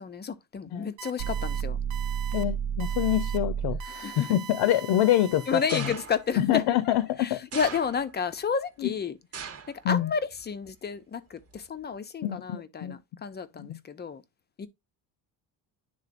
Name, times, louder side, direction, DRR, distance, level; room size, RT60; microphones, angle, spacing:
voice 1, 0.0-1.8 3.8-4.3 5.5-9.2 9.7-14.2 14.6-14.7, left 6 dB, 25° left, 0.4 m, -31 dB
sound 1, 1.0-1.6 1.9-2.4 2.8-3.4 3.8-6.1, right 9 dB, 80° right, 0.9 m, -42 dB
sound 2, 1.2-4.0, right 8 dB, 55° right, 0.5 m, -30 dB
voice 2, 2.3-3.8 4.2-5.9 6.4-7.4 8.8-8.9 9.8-10.1 12.2-13.0 13.6-13.8, left 12 dB, 70° left, 0.7 m, -26 dB
sound 3, 5.7-6.4 7.5-8.3 9.3-9.8 10.2-10.7 11.5-11.6, right 7 dB, 35° right, 0.9 m, -39 dB
10.5 x 3.7 x 2.5 m
cardioid pair, 160°, 44 cm